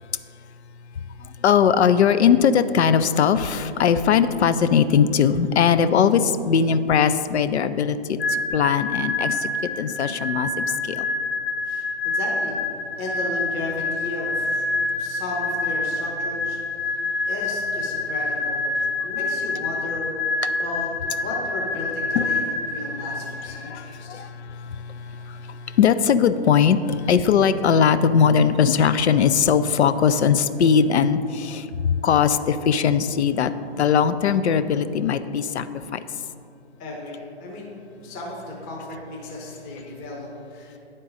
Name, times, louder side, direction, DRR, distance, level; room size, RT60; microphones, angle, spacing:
voice 1, 1.4-8.2 8.5-9.5 9.8-11.0 22.2-22.3 23.7-24.3 25.8-26.8 27.1-31.6 32.0-33.5 33.8-35.6, left 7 dB, 75° left, 12 dB, 0.5 m, -19 dB
sound 1, 8.2-23.8, left 3 dB, 60° left, 1.5 m, -27 dB
voice 2, 11.6-12.6 13.0-14.7 15.0-17.0 17.3-22.4 22.7-24.2 36.8-37.7 38.0-40.8, left 1 dB, 25° left, -2 dB, 0.9 m, -35 dB
10.0 x 3.8 x 4.0 m, 2.6 s
figure-of-eight pair, 130°, 33 cm